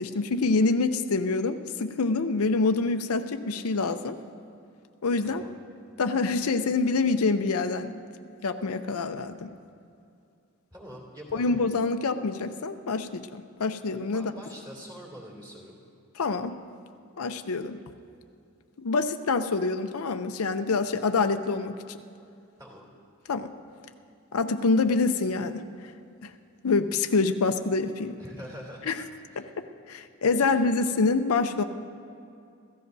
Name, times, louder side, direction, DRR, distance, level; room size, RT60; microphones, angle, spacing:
voice 1, 0.0-4.2 5.0-5.4 6.0-7.9 8.4-9.5 11.3-14.3 16.2-16.5 17.2-17.8 18.8-22.0 23.3-23.5 24.3-25.6 26.2-26.3 26.6-28.2 28.9-29.0 29.4-29.5 29.9-31.6, left 3 dB, 75° left, 8 dB, 0.6 m, -26 dB
voice 2, 5.2-5.6 10.7-11.6 14.1-15.8 22.6-22.9 28.2-28.9 29.3-29.5 30.2-30.7, equal, 20° right, -2 dB, 2.8 m, -45 dB
27.0 x 14.5 x 2.7 m, 2.5 s
head